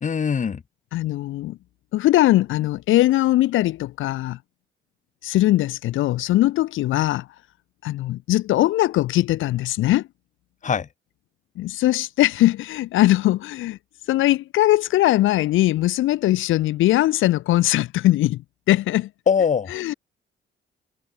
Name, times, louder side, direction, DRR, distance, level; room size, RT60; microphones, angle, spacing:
voice 1, 0.0-0.6 10.6-10.9 19.3-19.8, left 6 dB, 40° left, 1.4 m, -21 dB
voice 2, 0.9-1.6 1.9-4.4 5.2-7.3 7.8-10.1 11.6-13.8 14.1-18.4 18.7-19.1 19.7-19.9, left 15 dB, 85° left, 1.1 m, -20 dB
cardioid pair, 90°, 20 cm